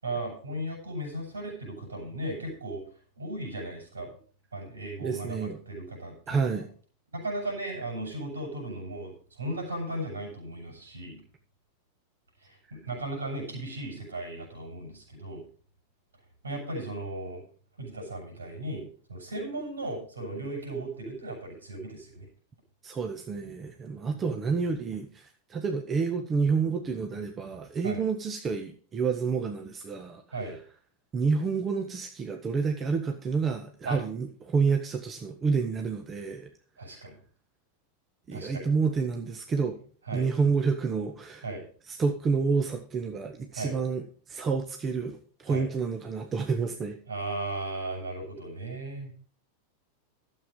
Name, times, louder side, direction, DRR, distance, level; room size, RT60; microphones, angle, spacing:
voice 1, 0.0-2.8 3.2-4.1 4.5-6.6 7.1-11.2 12.4-15.4 16.4-17.4 17.8-18.8 19.1-22.3 27.8-28.0 30.3-30.6 33.8-34.0 36.8-37.2 38.3-38.7 40.1-40.3 41.4-41.6 43.5-43.7 45.5-45.7 47.1-49.1, right 2 dB, 75° right, 2 dB, 6.7 m, -36 dB
voice 2, 5.0-5.6 6.3-6.7 22.8-25.2 25.5-30.2 31.1-36.5 38.3-39.8 40.1-41.4 41.9-44.0 44.3-47.0, right 5 dB, 25° right, 5 dB, 1.3 m, -29 dB
12.5 x 7.7 x 5.4 m, 0.43 s
figure-of-eight pair, 90°, 0 cm